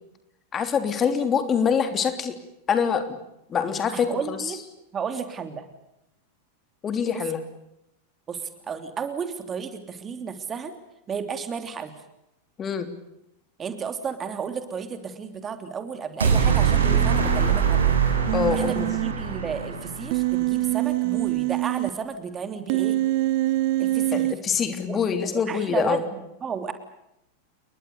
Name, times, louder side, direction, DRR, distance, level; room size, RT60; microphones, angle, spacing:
voice 1, 0.5-2.4 2.7-3.0 3.5-4.5 6.8-7.4 12.6-12.9 18.3-18.9 24.1-26.0, left 7 dB, 25° left, 8 dB, 3.2 m, -25 dB
voice 2, 3.9-4.6 4.9-5.6 7.1-7.2 8.3-10.7 11.1-11.9 13.6-18.0 18.5-23.0 23.8-24.3 24.9-26.7, right 6 dB, 20° right, 8 dB, 3.2 m, -33 dB
sound 1, 16.2-20.5, right 7 dB, 70° right, 6.3 m, -23 dB
Human voice, 18.3-19.1 20.1-21.9 22.7-24.3, right 18 dB, 50° right, 0.9 m, -24 dB
29.5 x 22.5 x 6.9 m, 0.84 s
figure-of-eight pair, 90°, 0 cm